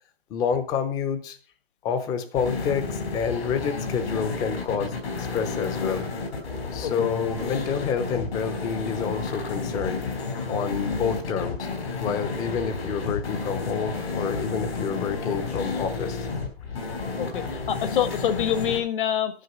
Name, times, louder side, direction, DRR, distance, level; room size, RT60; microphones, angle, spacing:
voice 1, 0.3-1.4 1.8-6.0 6.7-10.1 10.5-11.7 12.0-16.3, left 6 dB, 10° left, 0.5 m, -28 dB
sound 1, 2.3-18.8, left 4 dB, 75° left, 4.1 m, -31 dB
voice 2, 17.2-19.4, left 9 dB, 55° left, 1.3 m, -26 dB
9.8 x 6.0 x 6.6 m
hypercardioid pair, 155°, 31 cm